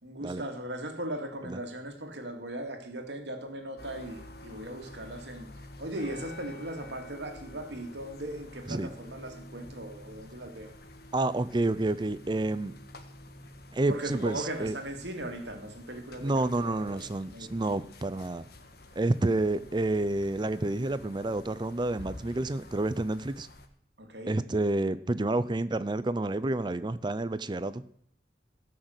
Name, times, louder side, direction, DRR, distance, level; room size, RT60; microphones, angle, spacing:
voice 1, 0.0-5.5 5.8-10.7 13.9-17.6 24.0-24.4, right 1 dB, 65° right, 4 dB, 2.4 m, -38 dB
sound 1, 3.8-23.7, left 1 dB, 55° left, 1.5 m, -49 dB
voice 2, 11.1-12.7 13.7-14.8 16.2-18.5 19.0-23.5 24.3-27.8, right 2 dB, 25° right, 14 dB, 0.5 m, -29 dB
16.5 x 6.6 x 7.9 m, 0.65 s
head